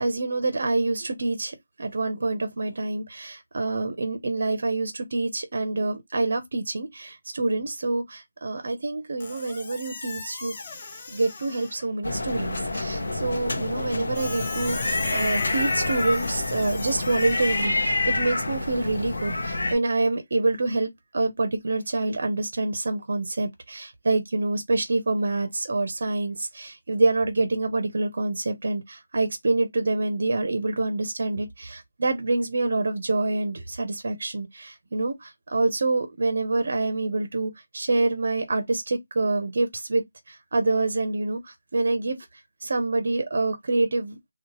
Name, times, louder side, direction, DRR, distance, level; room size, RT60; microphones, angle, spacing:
voice 1, 0.0-10.5 11.1-42.2 42.6-44.2, right 2 dB, 45° right, 0.5 m, -26 dB
Squeak, 9.2-12.0 14.1-17.7, left 3 dB, 20° left, 0.5 m, -38 dB
sound 1, 12.0-19.8, left 2 dB, 55° left, 0.7 m, -27 dB
2.8 x 2.0 x 2.8 m
figure-of-eight pair, 175°, 0 cm